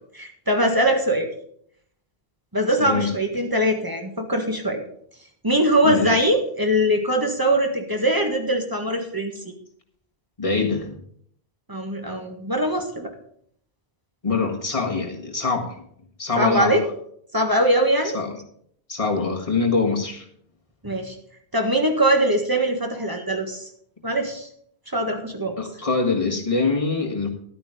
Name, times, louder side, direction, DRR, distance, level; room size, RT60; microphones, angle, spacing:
voice 1, 0.1-1.3 2.5-4.8 5.4-9.5 11.7-13.1 16.4-16.8 17.3-18.2 20.8-21.1 21.5-23.7 24.0-24.5 24.9-25.6, right 1 dB, 20° right, 3 dB, 1.7 m, -22 dB
voice 2, 2.8-3.1 5.8-6.3 10.4-11.0 14.2-15.8 16.2-16.8 18.1-18.4 18.9-20.2 25.6-27.3, left 4 dB, 30° left, 1 dB, 1.8 m, -24 dB
11.5 x 9.0 x 5.0 m, 0.64 s
omnidirectional pair, 1.1 m